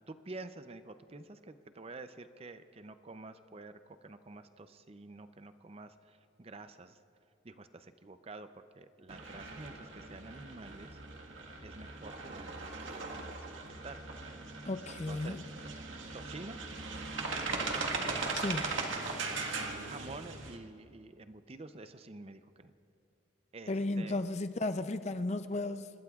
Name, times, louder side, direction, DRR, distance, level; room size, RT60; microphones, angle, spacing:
voice 1, 0.1-7.0 7.4-11.0 11.6-14.0 14.7-15.4 16.1-16.6 17.2-17.8 18.7-22.7 23.5-24.2, right 2 dB, 30° right, 0.5 m, -49 dB
sound 1, 9.1-20.6, right 3 dB, 85° right, 1.6 m, -39 dB
voice 2, 14.6-15.4 18.3-18.7 23.7-25.9, left 2 dB, 35° left, 0.5 m, -34 dB
26.0 x 20.5 x 2.4 m
head